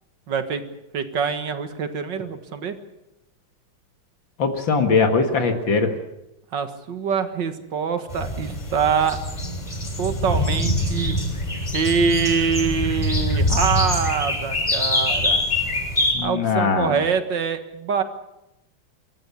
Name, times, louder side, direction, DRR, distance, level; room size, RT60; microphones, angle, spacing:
voice 1, 0.3-0.7 0.9-2.8 6.5-9.2 10.0-11.2 11.7-15.5 16.2-18.0, right 6 dB, 60° right, 8 dB, 2.3 m, -24 dB
voice 2, 4.4-5.9 16.1-17.0, left 4 dB, 65° left, 5 dB, 2.4 m, -21 dB
sound 1, 8.1-16.1, left 1 dB, 20° left, 7.4 m, -24 dB
26.0 x 14.5 x 8.4 m, 0.90 s
omnidirectional pair, 2.3 m